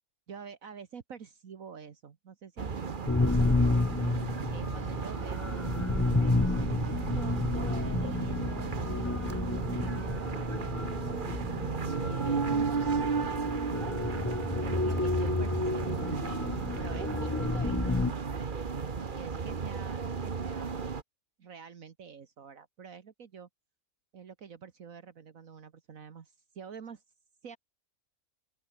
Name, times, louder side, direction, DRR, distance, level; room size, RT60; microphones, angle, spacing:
voice 1, 0.3-3.8 4.5-6.8 7.1-11.0 12.0-13.5 14.6-16.3 16.8-18.5 19.0-20.8 21.4-23.5 24.1-27.0 27.4-27.6, right 6 dB, 65° right, 1.8 m, -47 dB
sound 1, 2.6-21.0, right 5 dB, 35° right, 1.3 m, -34 dB
sound 2, 3.1-18.1, left 2 dB, 15° left, 0.5 m, -31 dB
open air
omnidirectional pair, 1.5 m